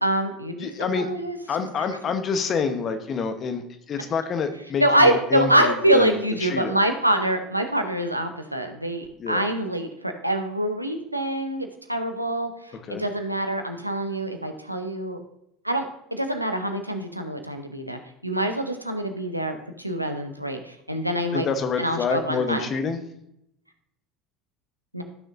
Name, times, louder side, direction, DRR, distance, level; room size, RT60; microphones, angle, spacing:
voice 1, 0.0-1.4 4.8-15.2 15.6-15.9 16.1-21.5 21.8-22.7 24.9-25.0, right 1 dB, 90° right, 5 dB, 0.8 m, -25 dB
voice 2, 0.6-1.1 1.5-6.8 9.2-9.4 12.9-13.0 21.3-23.0, left 5 dB, 35° left, 8 dB, 1.1 m, -27 dB
15.0 x 6.4 x 2.6 m, 0.78 s
figure-of-eight pair, 70°, 0 cm